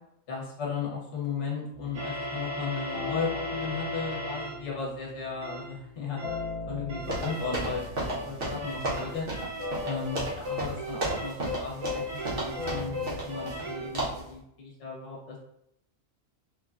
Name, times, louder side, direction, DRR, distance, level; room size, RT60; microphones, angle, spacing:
voice 1, 0.3-6.2 6.7-9.3 9.8-12.0 12.3-15.4, left 5 dB, 65° left, -4 dB, 1.1 m, -35 dB
sound 1, 1.7-14.3, left 3 dB, 90° left, 1.0 m, -41 dB
sound 2, 1.9-4.7 5.4-5.7 6.2-6.5 6.9-14.0, left 1 dB, 75° right, 0.9 m, -37 dB
sound 3, 7.1-13.7 13.9-14.3, right 1 dB, 50° right, 0.9 m, -34 dB
3.1 x 2.2 x 2.4 m, 0.77 s
omnidirectional pair, 1.4 m